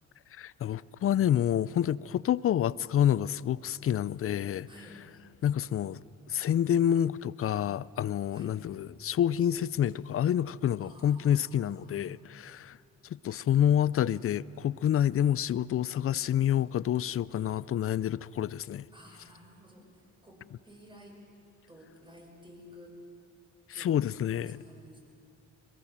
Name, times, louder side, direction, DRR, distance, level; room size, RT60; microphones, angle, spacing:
voice 1, 0.3-4.7 5.4-6.0 6.3-12.8 13.2-18.8 23.8-24.6, left 10 dB, 50° left, 0.5 m, -28 dB
voice 2, 4.7-5.0 8.3-8.6 10.8-12.0 18.9-21.2 21.7-23.0 23.7-25.0, equal, 15° right, 6.5 m, -53 dB
23.0 x 22.0 x 7.4 m
cardioid pair, 90°, 30 cm